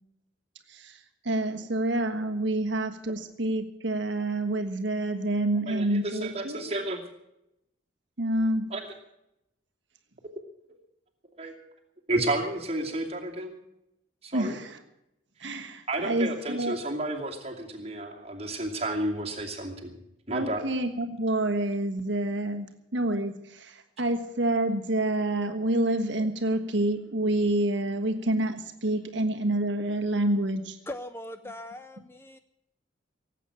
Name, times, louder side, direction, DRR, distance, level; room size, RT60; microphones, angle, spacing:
voice 1, 0.7-6.6 8.2-8.7 14.3-14.8 15.4-16.8 20.3-30.8, right 1 dB, 65° right, 5 dB, 1.4 m, -28 dB
voice 2, 5.7-7.0 8.7-8.8 11.3-11.5 12.1-13.6 14.2-14.6 15.4-15.5 15.9-20.0 20.3-20.6, right 2 dB, 30° right, 0 dB, 2.5 m, -31 dB
voice 3, 30.9-32.4, left 1 dB, 10° left, 10 dB, 0.5 m, -40 dB
18.0 x 8.4 x 8.6 m, 0.85 s
head